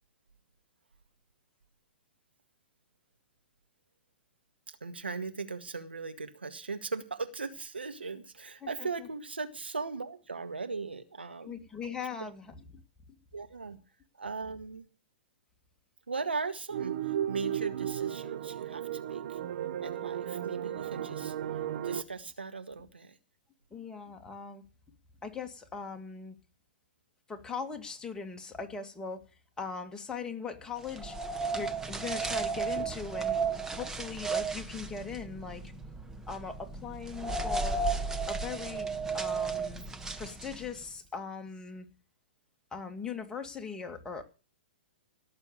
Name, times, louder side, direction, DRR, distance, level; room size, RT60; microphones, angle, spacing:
voice 1, 4.7-11.7 13.3-13.8 14.1-14.9 16.1-19.4 19.8-21.3 21.8-23.2, right 4 dB, 85° right, 8 dB, 1.8 m, -38 dB
voice 2, 11.4-12.5 23.7-24.6 25.2-26.4 27.3-29.2 29.6-31.2 31.5-33.4 33.7-35.6 36.3-37.8 38.3-39.9 40.2-41.9 42.7-44.2, left 5 dB, 10° left, 4 dB, 2.3 m, -40 dB
sound 1, 16.7-22.0, right 10 dB, 60° right, 1.1 m, -35 dB
sound 2, 30.9-40.8, right 4 dB, 10° right, 1.4 m, -34 dB
17.5 x 7.0 x 6.8 m, 0.34 s
hypercardioid pair, 115°, 6 cm